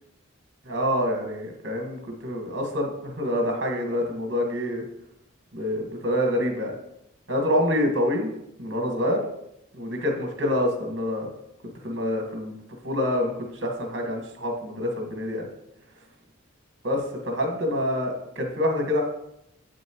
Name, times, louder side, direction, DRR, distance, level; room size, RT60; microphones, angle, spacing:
voice 1, 0.7-4.8 5.5-6.7 7.3-8.3 8.6-9.2 9.7-11.3 11.8-12.6 12.8-15.5 16.8-19.0, left 1 dB, 60° right, 2 dB, 1.7 m, -26 dB
8.3 x 7.3 x 3.1 m, 0.81 s
head